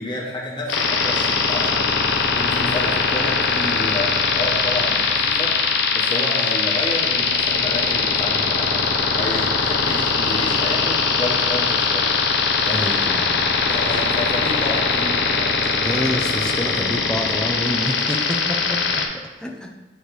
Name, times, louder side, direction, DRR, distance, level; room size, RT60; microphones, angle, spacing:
voice 1, 0.0-12.2 12.6-12.9 13.6-15.6, left 1 dB, 25° left, -3 dB, 1.2 m, -30 dB
sound 1, 0.7-19.1, left 5 dB, 65° left, 0.8 m, -21 dB
voice 2, 12.7-13.3 15.8-19.0 19.4-19.7, equal, 5° left, 1 dB, 0.5 m, -27 dB
8.9 x 3.2 x 4.7 m, 1.1 s
head